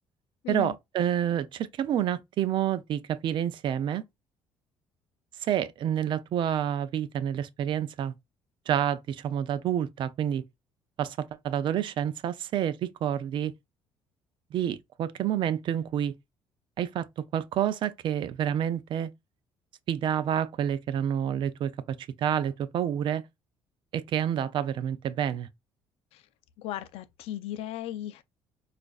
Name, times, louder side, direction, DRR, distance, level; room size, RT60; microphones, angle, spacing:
voice 1, 0.5-4.0 5.4-8.1 8.7-10.4 11.0-13.5 14.5-16.1 16.8-19.1 19.9-21.7 22.0-23.2 23.9-25.5, right 10 dB, 55° right, 0.4 m, -28 dB
voice 2, 26.6-28.2, left 12 dB, 80° left, 0.4 m, -36 dB
4.9 x 2.4 x 2.3 m
cardioid pair, 120°, 10 cm